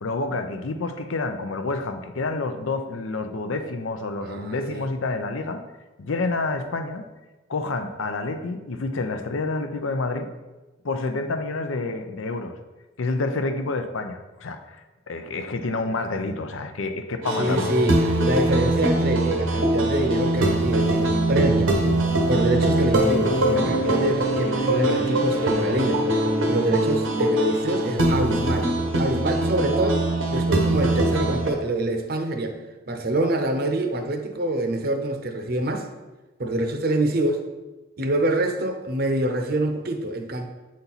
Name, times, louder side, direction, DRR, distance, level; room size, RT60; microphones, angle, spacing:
voice 1, 0.0-5.6 6.0-7.1 7.5-10.3 10.8-12.6 13.0-17.7, left 3 dB, 85° left, 8 dB, 0.6 m, -28 dB
voice 2, 4.2-4.9 17.4-21.7 22.3-28.7 29.0-30.0 30.3-32.6 32.9-35.9 36.4-37.4 38.0-40.5, right 1 dB, 50° right, 5 dB, 0.7 m, -25 dB
sound 1, 17.2-31.5, right 1 dB, 85° right, 1.0 m, -22 dB
8.0 x 4.2 x 4.0 m, 1.1 s
head